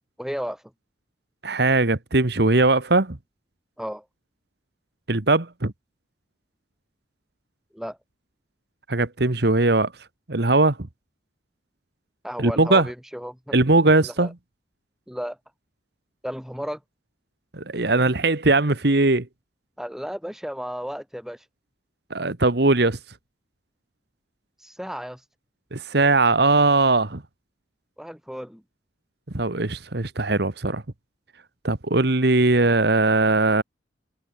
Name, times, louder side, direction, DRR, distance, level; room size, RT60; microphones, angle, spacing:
voice 1, 0.2-0.6 3.8-4.0 7.7-8.0 12.2-13.5 14.0-14.3 15.1-15.4 16.2-16.8 19.8-21.4 24.6-25.2 28.0-28.6, equal, ahead, 6.4 m, -33 dB
voice 2, 1.4-3.2 5.1-5.7 8.9-9.9 10.3-10.8 12.4-12.9 13.5-14.3 17.5-19.3 22.1-23.0 25.7-27.2 29.3-30.8 31.6-33.6, right 2 dB, 60° right, 1.5 m, -20 dB
head